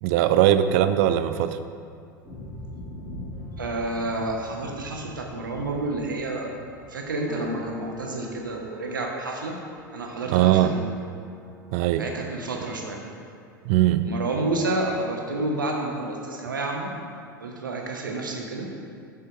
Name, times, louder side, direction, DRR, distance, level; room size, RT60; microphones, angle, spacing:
voice 1, 0.0-1.6 10.3-10.7 11.7-12.0 13.7-14.1, right 12 dB, 45° right, 11 dB, 0.4 m, -20 dB
sound 1, 2.2-10.5, left 1 dB, ahead, 2.0 m, -43 dB
voice 2, 3.6-6.5 6.9-9.6 9.9-10.8 12.0-13.0 14.0-16.9 17.4-18.7, right 2 dB, 75° right, 1 dB, 1.1 m, -29 dB
Piano, 7.3-14.5, left 1 dB, 20° right, 1.3 m, -45 dB
6.8 x 5.0 x 5.4 m, 2.3 s
figure-of-eight pair, 85°, 11 cm